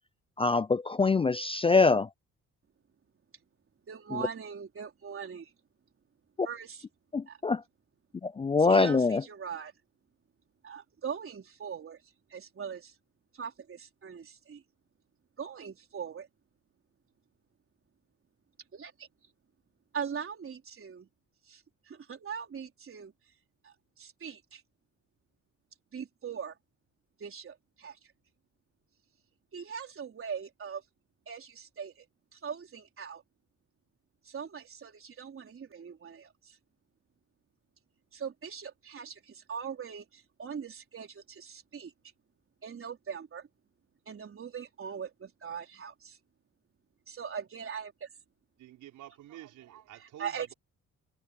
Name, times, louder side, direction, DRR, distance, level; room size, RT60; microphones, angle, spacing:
voice 1, 0.4-2.1 4.1-4.2 7.1-7.6 8.2-9.2, left 4 dB, 20° left, 0.4 m, -24 dB
voice 2, 3.9-5.5 6.4-6.8 7.3-7.4 8.6-9.7 10.6-13.0 13.3-14.6 15.4-16.3 18.7-19.3 19.9-21.1 21.4-23.1 23.6-24.6 25.9-26.6 27.2-28.1 29.5-30.8 31.3-32.1 32.3-33.2 34.2-36.6 38.1-41.9 42.6-43.5 44.1-46.2 47.1-48.1 50.2-50.5, right 7 dB, 45° right, 4.2 m, -41 dB
voice 3, 48.6-50.5, right 13 dB, 85° right, 5.0 m, -49 dB
cardioid pair, 90°, 30 cm